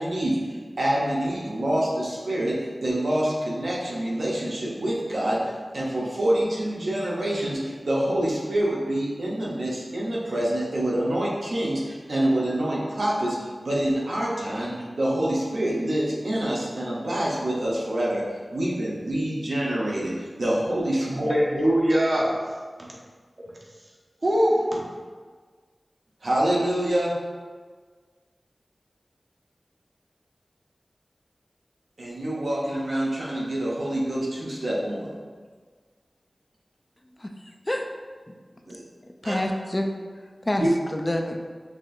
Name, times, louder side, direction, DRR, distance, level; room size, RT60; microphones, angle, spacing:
voice 1, 0.0-18.2 18.5-21.1 26.2-27.1 32.0-35.1 38.7-38.8 39.2-39.4 40.6-40.7, right 1 dB, 85° right, -5 dB, 0.8 m, -26 dB
voice 2, 21.1-22.5 22.8-22.9 24.2-24.8, equal, 55° right, -3 dB, 0.9 m, -22 dB
voice 3, 37.2-37.9 38.3-38.4 38.6-38.8 39.1-39.9 40.4-41.4, left 1 dB, 30° left, 3 dB, 0.4 m, -28 dB
5.8 x 2.5 x 2.6 m, 1.5 s
cardioid pair, 40°, 0 cm